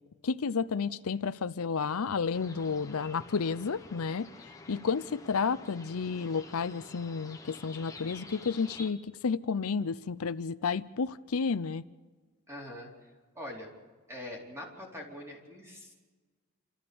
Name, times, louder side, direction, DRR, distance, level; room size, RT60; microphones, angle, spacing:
voice 1, 0.2-4.3 4.7-11.8, left 5 dB, 80° left, 14 dB, 0.6 m, -31 dB
sound 1, 2.3-8.9, left 3 dB, 15° left, 1.2 m, -49 dB
voice 2, 12.5-13.1 13.3-13.7 14.1-15.9, left 1 dB, 10° right, -2 dB, 4.1 m, -43 dB
28.5 x 14.0 x 7.0 m, 1.4 s
head